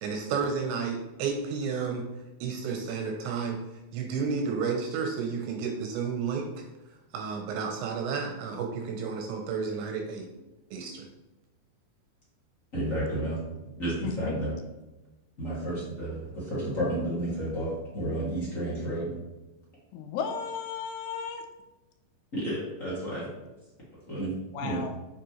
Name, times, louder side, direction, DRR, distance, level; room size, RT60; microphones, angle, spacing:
voice 1, 0.0-2.0 2.4-3.6 3.9-6.5 7.1-10.3 10.7-11.1, right 5 dB, 75° right, 2 dB, 2.9 m, -31 dB
voice 2, 12.7-13.4 13.8-14.6 15.4-19.1 22.3-23.3 24.1-24.3 24.6-24.9, right 1 dB, 55° left, -8 dB, 0.8 m, -31 dB
voice 3, 14.0-14.3 19.9-21.4 24.5-24.9, left 6 dB, 80° left, 5 dB, 2.4 m, -34 dB
7.3 x 6.9 x 3.1 m, 1.0 s
omnidirectional pair, 5.6 m